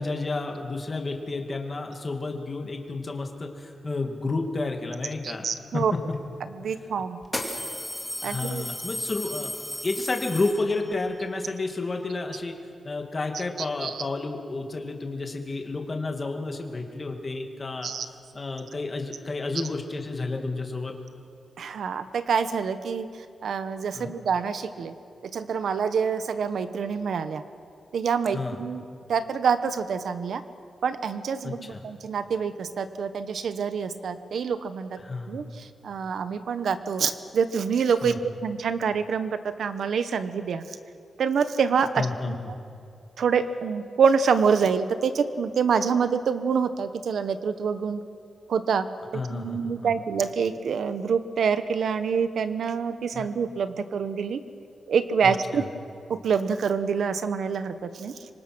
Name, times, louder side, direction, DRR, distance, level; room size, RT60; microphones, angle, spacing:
voice 1, 0.0-5.5 5.7-5.8 8.2-9.5 9.8-12.6 12.8-17.9 18.3-20.9 23.9-24.1 28.3-28.6 31.4-31.8 35.0-35.4 38.0-38.2 42.0-42.5 49.1-49.6 53.1-53.3 55.2-55.6, left 3 dB, 30° left, 3 dB, 2.3 m, -31 dB
voice 2, 5.2-5.9 6.4-7.2 8.2-8.6 13.8-14.0 17.8-18.1 21.6-23.1 23.4-25.0 25.3-27.4 27.9-28.8 29.1-30.4 30.8-35.0 35.3-40.8 41.2-42.5 43.2-48.0 48.5-48.9 49.1-54.4 54.9-55.7 56.1-58.3, right 6 dB, 75° right, 11 dB, 1.0 m, -26 dB
sound 1, 6.1-6.2 7.2-11.0, left 1 dB, 5° left, 2.6 m, -34 dB
25.5 x 25.0 x 6.2 m, 2.5 s
wide cardioid pair, 145°, 0 cm